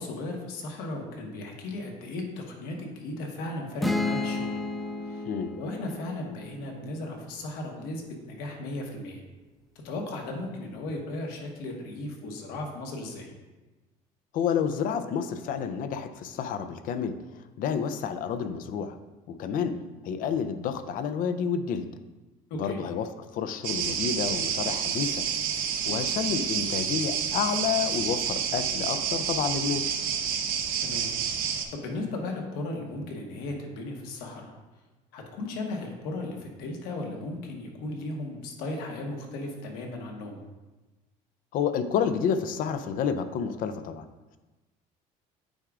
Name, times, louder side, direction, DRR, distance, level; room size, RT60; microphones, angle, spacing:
voice 1, 0.0-4.5 5.1-5.2 5.6-9.2 9.8-13.3 22.5-22.8 30.8-34.5 35.1-40.4, left 2 dB, 80° left, 1 dB, 1.3 m, -36 dB
sound 1, 3.8-7.5, left 2 dB, ahead, 0.6 m, -32 dB
voice 2, 14.3-17.1 17.6-19.0 19.4-19.8 20.0-21.8 22.6-23.1 23.3-25.2 25.9-30.0 41.5-44.0, left 7 dB, 65° left, 11 dB, 0.5 m, -29 dB
sound 2, 23.6-31.7, right 7 dB, 65° right, 0.8 m, -29 dB
8.8 x 4.8 x 2.4 m, 1.1 s
supercardioid pair, 100°, 16 cm